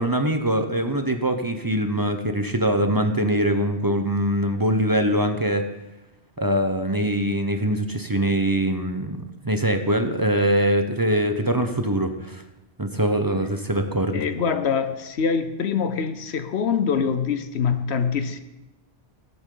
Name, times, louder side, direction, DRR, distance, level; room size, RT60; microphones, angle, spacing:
voice 1, 0.0-5.6 6.4-12.4 12.8-14.3, right 1 dB, 20° right, 6 dB, 0.8 m, -23 dB
voice 2, 14.1-18.4, left 6 dB, 90° left, 10 dB, 1.1 m, -24 dB
20.0 x 8.1 x 3.9 m, 0.95 s
omnidirectional pair, 1.1 m